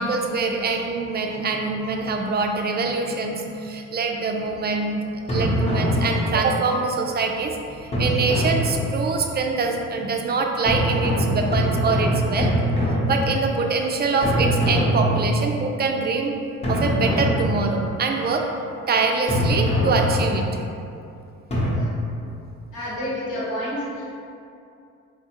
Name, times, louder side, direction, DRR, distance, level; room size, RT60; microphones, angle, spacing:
voice 1, 0.0-12.5 13.1-16.3 16.7-18.5 18.9-20.5, right 4 dB, 35° right, 3 dB, 0.4 m, -24 dB
sound 1, 5.3-6.7 7.9-9.2 10.7-13.7 14.2-15.7 16.6-18.0 19.3-20.7 21.5-21.7, equal, 20° left, 0.8 m, -23 dB
voice 2, 22.7-24.1, equal, 80° left, -8 dB, 1.4 m, -29 dB
4.0 x 2.3 x 2.9 m, 2.6 s
cardioid pair, 90°, 30 cm